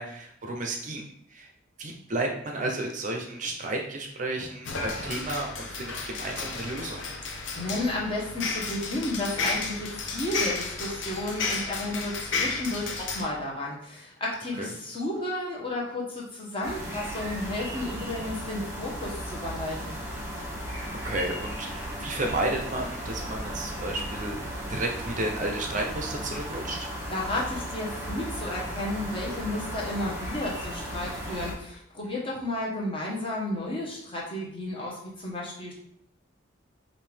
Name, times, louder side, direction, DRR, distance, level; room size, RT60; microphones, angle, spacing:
voice 1, 0.0-1.5 1.8-7.0 14.6-14.7 21.0-26.9, right 2 dB, 40° right, 2 dB, 0.5 m, -32 dB
sound 1, 4.6-13.2, left 4 dB, 70° left, 0.7 m, -33 dB
voice 2, 7.5-20.0 27.1-35.7, left 1 dB, 25° left, -3 dB, 1.0 m, -32 dB
sound 2, 16.6-31.5, equal, 15° right, 1.2 m, -36 dB
5.3 x 2.6 x 3.3 m, 0.71 s
head